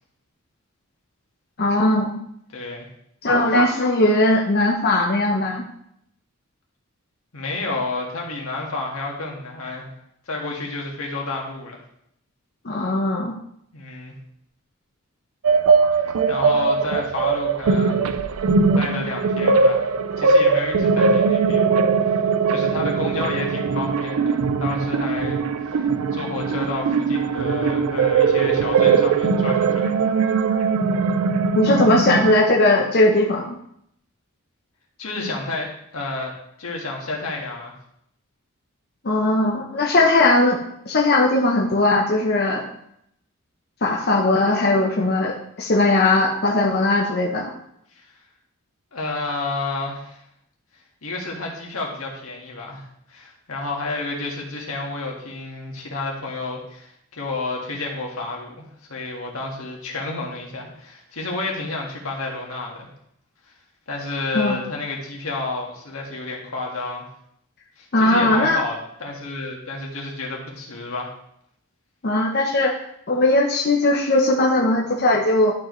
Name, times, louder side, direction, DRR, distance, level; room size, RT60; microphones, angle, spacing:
voice 1, 1.6-2.1 3.2-5.6 12.6-13.3 31.5-33.6 39.0-40.6 40.9-42.6 43.8-47.5 64.3-64.5 67.9-68.6 72.0-72.7 73.1-75.5, left 2 dB, 50° left, -1 dB, 0.8 m, -19 dB
voice 2, 2.5-2.9 7.3-9.9 10.3-11.8 13.7-14.1 15.9-18.1 18.7-19.9 20.2-21.7 22.1-22.2 22.5-29.9 35.0-36.3 36.6-37.7 47.9-48.0 48.9-50.2 51.0-62.9 63.9-67.0 67.8-71.1, left 3 dB, 85° left, -1 dB, 1.7 m, -30 dB
sound 1, 15.4-32.4, right 5 dB, 90° right, 0.5 m, -20 dB
11.5 x 4.7 x 3.1 m, 0.73 s
head